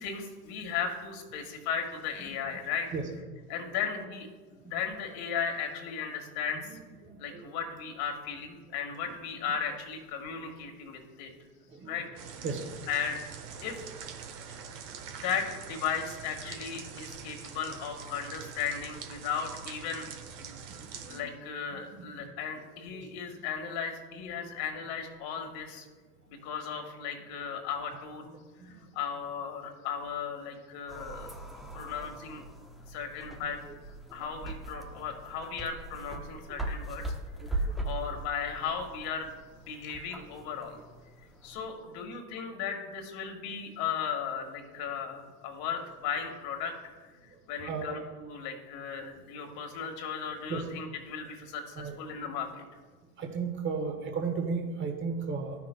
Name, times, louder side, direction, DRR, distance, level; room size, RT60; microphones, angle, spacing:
voice 1, 0.0-2.9 3.5-6.8 7.2-11.3 11.9-12.1 12.9-13.2 13.6-13.8 15.2-20.1 21.1-25.9 26.3-32.4 32.9-33.6 34.1-37.1 37.4-39.3 39.6-40.8 41.4-52.6, left 7 dB, 50° left, 3 dB, 1.7 m, -36 dB
voice 2, 7.1-7.5 11.8-11.9 12.4-12.6 21.0-21.1 21.7-21.8 47.6-48.0 50.5-50.6 51.8-52.0 53.2-55.5, right 5 dB, 25° right, 3 dB, 1.2 m, -33 dB
sound 1, 12.2-21.2, right 6 dB, 50° right, 1.1 m, -44 dB
sound 2, 30.9-41.6, right 2 dB, ahead, 0.5 m, -40 dB
14.0 x 5.8 x 2.2 m, 1.4 s
hypercardioid pair, 90°, 45 cm